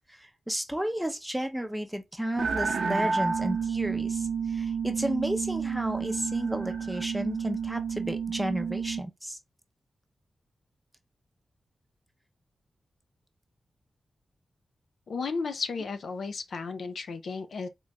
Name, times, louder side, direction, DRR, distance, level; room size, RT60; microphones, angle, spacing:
voice 1, 0.1-9.4, right 1 dB, 5° right, 0.7 m, -32 dB
sound 1, 2.4-9.0, right 6 dB, 80° right, 0.7 m, -30 dB
voice 2, 15.1-17.7, left 4 dB, 80° left, 0.6 m, -34 dB
3.8 x 2.4 x 3.2 m
cardioid pair, 75°, 0 cm